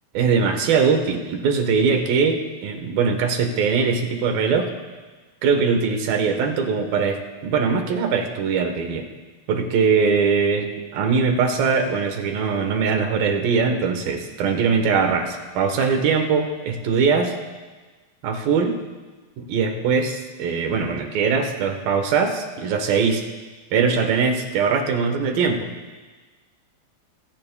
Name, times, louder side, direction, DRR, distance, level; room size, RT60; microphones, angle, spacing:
voice 1, 0.1-4.7 5.4-9.1 9.5-17.3 18.2-18.8 19.4-23.2 23.7-25.7, right 5 dB, 70° right, 5 dB, 2.9 m, -21 dB
23.0 x 16.5 x 2.2 m, 1.3 s
omnidirectional pair, 4.4 m